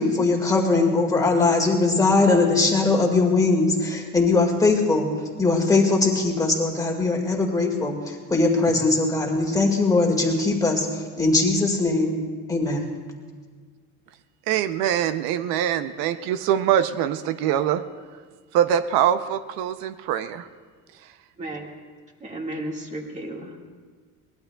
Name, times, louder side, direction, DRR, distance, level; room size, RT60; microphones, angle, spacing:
voice 1, 0.0-5.1 5.4-12.2 12.5-12.8, left 3 dB, 10° left, 0 dB, 1.9 m, -21 dB
voice 2, 14.5-17.8 18.5-20.5, right 10 dB, 80° right, 11 dB, 0.7 m, -23 dB
voice 3, 21.4-21.7 22.2-23.8, right 1 dB, 20° right, 0 dB, 1.8 m, -34 dB
22.5 x 19.0 x 2.3 m, 1.5 s
cardioid pair, 150°, 35 cm